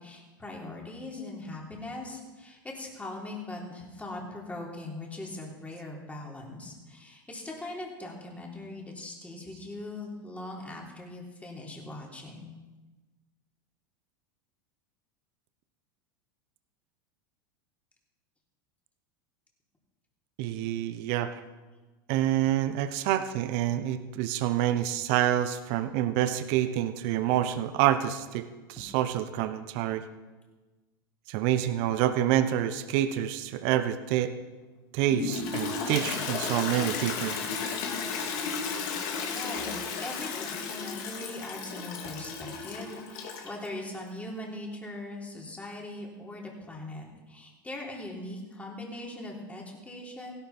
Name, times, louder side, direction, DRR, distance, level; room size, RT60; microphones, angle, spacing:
voice 1, 0.0-12.5 39.2-50.3, left 2 dB, 10° left, -1 dB, 3.5 m, -40 dB
voice 2, 20.4-21.4 22.1-30.0 31.3-34.3 34.9-37.8, right 12 dB, 60° right, 11 dB, 0.9 m, -27 dB
Toilet flush, 35.1-43.7, left 5 dB, 60° left, 2.6 m, -34 dB
16.0 x 12.0 x 4.3 m, 1.2 s
hypercardioid pair, 95°, 12 cm